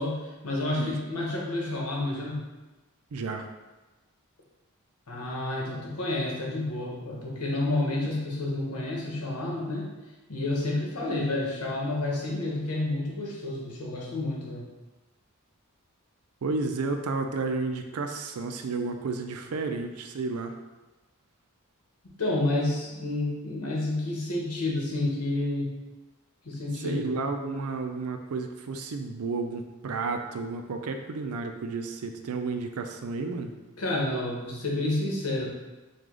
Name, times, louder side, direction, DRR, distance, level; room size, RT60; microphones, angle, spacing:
voice 1, 0.0-2.4 5.1-9.9 10.3-14.7 22.2-25.7 26.4-27.1 33.5-35.5, left 2 dB, 90° left, -2 dB, 1.1 m, -30 dB
voice 2, 3.1-3.5 16.4-20.5 26.8-33.5, right 3 dB, 80° right, 5 dB, 0.5 m, -32 dB
4.9 x 2.3 x 3.7 m, 1.1 s
head